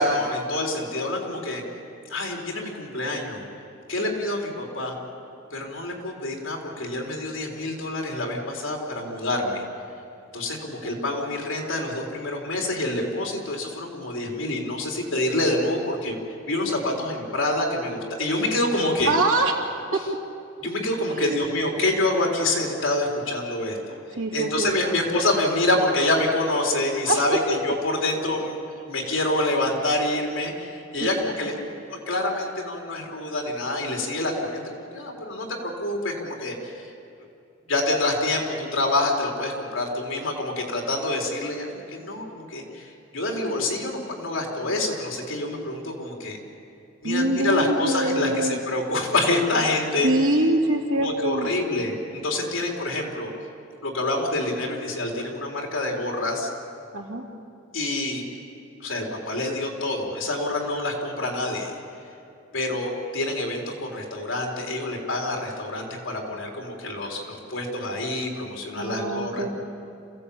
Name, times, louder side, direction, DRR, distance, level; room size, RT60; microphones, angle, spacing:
voice 1, 0.0-1.6 2.1-3.4 3.9-5.0 5.5-9.6 10.3-16.2 16.5-19.1 20.6-24.0 24.3-28.5 28.8-31.5 31.9-36.9 37.7-46.4 47.0-50.1 50.9-53.3 53.8-56.5 57.7-58.2 58.8-61.7 62.5-69.5, left 2 dB, 70° left, 0 dB, 4.1 m, -27 dB
voice 2, 19.0-19.7 19.9-20.0 21.1-21.4 24.2-24.9 27.1-27.2 31.0-31.1 47.0-48.6 50.0-51.5 56.9-57.2 68.8-69.5, right 2 dB, 80° right, 0 dB, 2.9 m, -24 dB
27.5 x 16.0 x 8.6 m, 2.6 s
head